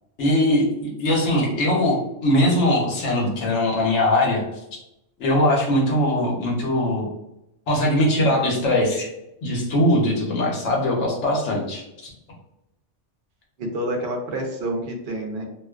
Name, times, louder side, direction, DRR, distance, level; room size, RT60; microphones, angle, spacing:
voice 1, 0.2-4.4 5.2-7.1 7.7-9.1 9.4-12.1, left 1 dB, 85° left, -2 dB, 1.1 m, -21 dB
voice 2, 13.6-15.4, right 1 dB, 65° right, 2 dB, 0.7 m, -28 dB
2.5 x 2.3 x 2.3 m, 0.85 s
omnidirectional pair, 1.2 m